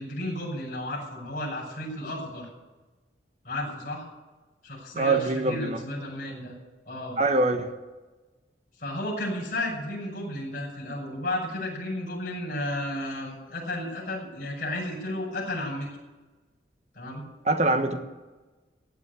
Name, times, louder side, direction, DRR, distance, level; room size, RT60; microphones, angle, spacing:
voice 1, 0.0-2.5 3.4-4.0 4.6-6.5 6.8-7.2 8.8-15.9 16.9-17.2, left 1 dB, 45° left, -6 dB, 6.5 m, -33 dB
voice 2, 4.9-5.8 7.2-7.7 17.5-18.0, right 2 dB, 40° right, 7 dB, 1.3 m, -23 dB
15.5 x 9.1 x 8.3 m, 1.2 s
head